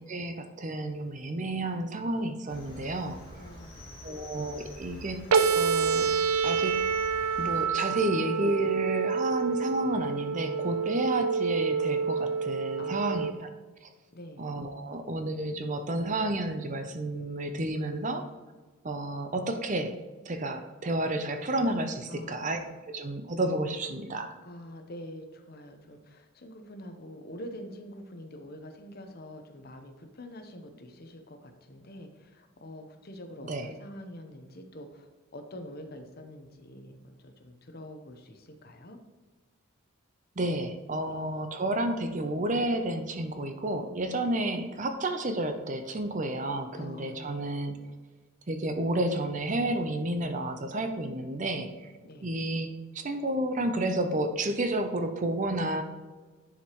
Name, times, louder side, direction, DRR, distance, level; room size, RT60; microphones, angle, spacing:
voice 1, 0.1-3.5 4.0-5.2 5.5-6.1 6.4-6.8 7.4-13.5 14.4-18.2 18.8-19.9 20.3-22.6 22.9-24.3 33.5-33.7 40.4-47.8 48.5-51.9 52.2-55.8, right 1 dB, 35° right, 7 dB, 0.6 m, -31 dB
Cricket, 2.5-7.7, equal, 25° left, 1.9 m, -47 dB
voice 2, 3.4-4.4 12.8-13.3 14.1-14.5 22.1-22.5 24.4-39.0 41.1-41.3 46.7-47.6 52.0-52.5, left 1 dB, 45° left, 6 dB, 0.8 m, -46 dB
sound 1, 5.3-13.3, right 5 dB, 80° right, 0.5 m, -27 dB
10.5 x 4.9 x 3.0 m, 1.3 s
head